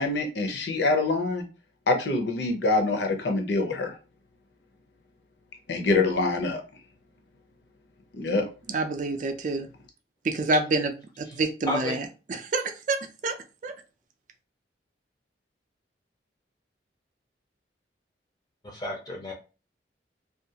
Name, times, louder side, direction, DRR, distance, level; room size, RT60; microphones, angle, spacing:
voice 1, 0.0-1.4 1.9-3.9 5.7-6.6 8.1-8.4, left 3 dB, 70° left, 0.7 m, -25 dB
voice 2, 8.7-9.7 10.3-10.9 11.4-13.3 13.6-13.7, right 2 dB, 45° right, 0.4 m, -27 dB
voice 3, 11.7-12.0 18.7-19.3, equal, 20° left, 0.5 m, -31 dB
2.5 x 2.3 x 2.8 m
head